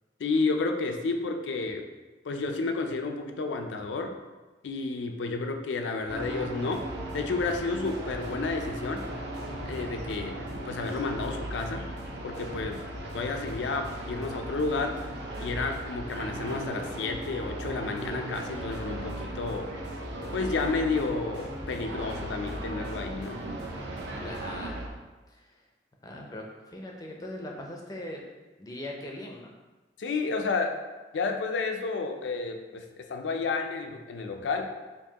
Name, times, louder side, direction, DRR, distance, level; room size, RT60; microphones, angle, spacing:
voice 1, 0.2-1.9 2.2-4.1 4.6-6.9 7.1-9.0 9.7-10.4 10.7-11.9 12.2-12.8 13.1-14.9 15.4-19.7 20.3-23.4 30.0-30.8 31.1-34.7, left 3 dB, 85° left, 5 dB, 0.4 m, -31 dB
sound 1, 6.1-24.9, right 1 dB, 70° right, 0.5 m, -37 dB
sound 2, 6.7-24.4, equal, 30° right, 1.1 m, -46 dB
voice 2, 24.2-24.9 25.3-25.6 26.0-28.2 28.6-29.5, left 1 dB, 20° left, 0 dB, 0.4 m, -40 dB
4.5 x 2.6 x 2.8 m, 1.2 s
head